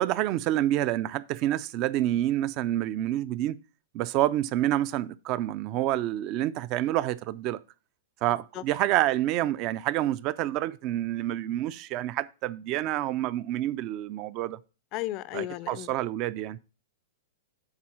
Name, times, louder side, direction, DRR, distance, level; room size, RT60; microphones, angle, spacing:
voice 1, 0.0-3.6 3.9-7.6 8.2-14.6 15.3-16.6, right 14 dB, 30° right, 0.4 m, -28 dB
voice 2, 14.9-15.9, left 16 dB, 30° left, 0.4 m, -34 dB
7.3 x 4.1 x 6.1 m
hypercardioid pair, 160°, 0 cm